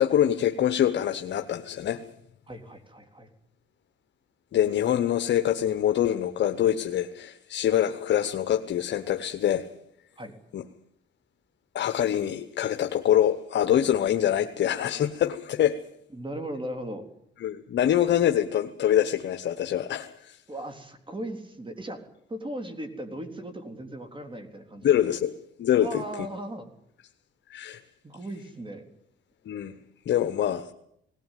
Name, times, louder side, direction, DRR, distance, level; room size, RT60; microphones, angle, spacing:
voice 1, 0.0-2.1 4.5-9.7 10.5-10.6 11.7-15.8 17.4-20.4 24.8-25.3 25.6-26.0 27.5-27.8 29.5-29.7 30.1-30.7, left 11 dB, 65° left, 1.0 m, -25 dB
voice 2, 2.5-3.3 10.2-10.3 16.1-17.1 20.5-22.0 22.3-24.9 25.8-26.7 28.0-28.8, right 1 dB, 25° right, 3.6 m, -37 dB
19.0 x 18.0 x 9.2 m
cardioid pair, 90°, 20 cm